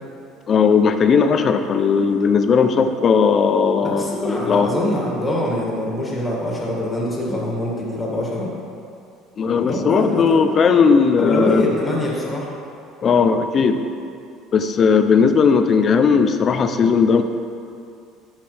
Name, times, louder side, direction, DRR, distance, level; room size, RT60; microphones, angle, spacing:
voice 1, 0.5-4.7 9.4-11.6 13.0-13.8 14.5-17.2, left 5 dB, 35° left, 8 dB, 0.5 m, -17 dB
voice 2, 3.8-8.5 9.6-10.5 11.2-12.5, left 1 dB, 15° left, -5 dB, 2.2 m, -24 dB
10.0 x 7.4 x 3.4 m, 2.5 s
cardioid pair, 130°, 0 cm